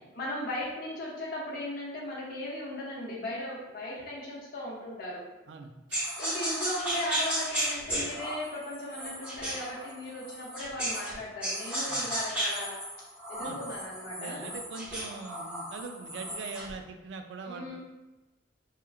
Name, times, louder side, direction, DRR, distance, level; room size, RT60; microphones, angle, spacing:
voice 1, 0.1-5.3 6.2-12.8 13.3-14.5 17.4-17.8, left 1 dB, 55° left, -5 dB, 0.6 m, -37 dB
voice 2, 5.5-6.1 11.9-12.1 13.4-13.6 14.2-17.8, right 4 dB, 75° right, 6 dB, 0.3 m, -42 dB
sound 1, 5.9-11.1 11.4-16.7, right 1 dB, 5° right, 0.6 m, -34 dB
2.9 x 2.4 x 2.3 m, 1.1 s
head